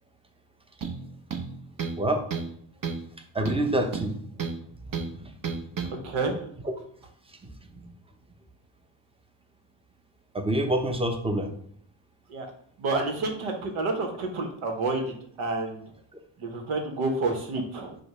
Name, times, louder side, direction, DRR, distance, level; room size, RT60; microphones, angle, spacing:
sound 1, 0.8-1.0 1.3-2.0 2.3-2.5 2.8-3.1 3.4-4.6 4.9-5.1 5.4-5.9, right 5 dB, 40° right, 0.9 m, -32 dB
voice 1, 3.3-4.1 5.2-5.3 7.7-7.9 10.3-11.5, right 1 dB, 10° right, 6 dB, 0.7 m, -26 dB
voice 2, 6.0-6.5 12.3-12.5 12.8-15.8 16.4-18.0, right 3 dB, 75° right, 3 dB, 1.1 m, -29 dB
5.0 x 2.2 x 4.8 m, 0.63 s
cardioid pair, 65°, 49 cm